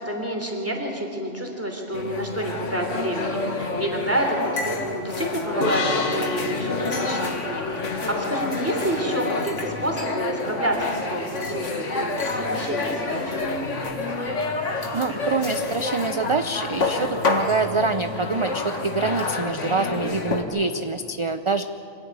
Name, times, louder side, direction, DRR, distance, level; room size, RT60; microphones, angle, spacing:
voice 1, 0.0-4.4 4.6-7.6 8.1-13.2, right 1 dB, 10° right, 2 dB, 3.3 m, -28 dB
sound 1, 1.9-20.4, left 3 dB, 85° left, 2.1 m, -28 dB
sound 2, 5.6-9.1, left 2 dB, 55° left, 1.9 m, -30 dB
voice 2, 14.9-21.6, right 3 dB, 35° right, 9 dB, 0.5 m, -25 dB
25.0 x 16.0 x 9.5 m, 2.5 s
omnidirectional pair, 1.2 m